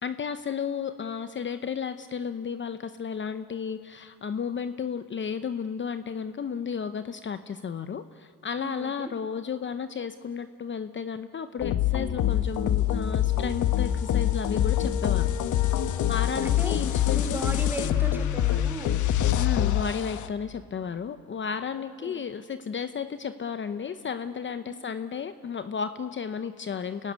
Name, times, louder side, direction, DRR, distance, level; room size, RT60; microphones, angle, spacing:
voice 1, 0.0-15.3 16.1-17.4 19.4-27.1, left 6 dB, 40° left, 10 dB, 0.9 m, -33 dB
voice 2, 8.6-9.1 15.9-16.1 16.4-19.0 22.0-22.2 24.6-24.8, right 1 dB, 5° right, 6 dB, 2.9 m, -37 dB
sound 1, 11.6-20.3, left 11 dB, 75° left, 1.1 m, -25 dB
27.0 x 17.0 x 9.7 m, 2.1 s
cardioid pair, 90°, 30 cm